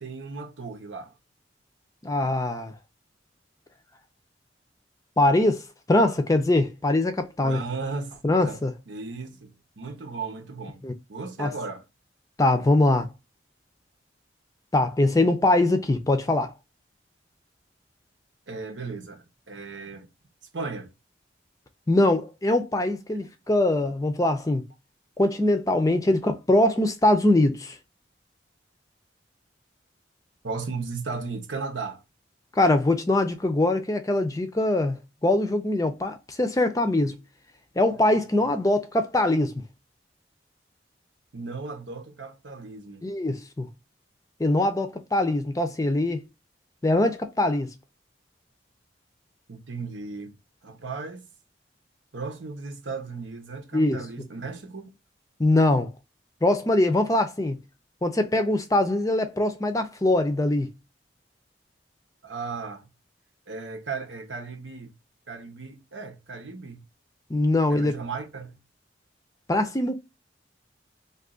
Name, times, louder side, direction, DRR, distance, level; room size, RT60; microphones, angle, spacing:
voice 1, 0.0-1.1 7.4-8.6 8.9-10.8 11.1-11.8 18.5-20.1 20.5-20.9 30.4-32.0 38.4-38.5 41.3-43.1 49.5-50.4 50.6-51.3 52.1-54.9 62.2-62.8 63.5-64.9 65.3-66.8 67.7-68.6, right 4 dB, 90° right, 1.0 m, -36 dB
voice 2, 2.0-2.7 5.2-7.6 8.2-8.7 10.8-10.9 11.4-11.5 12.4-13.1 14.7-16.5 21.9-24.6 25.2-27.7 32.6-37.2 37.8-39.5 43.0-43.7 44.4-46.2 46.8-47.7 53.7-54.0 55.4-55.9 56.4-57.6 58.0-60.7 67.3-67.9 69.5-69.9, left 1 dB, 20° left, 0.4 m, -22 dB
2.6 x 2.5 x 3.7 m
head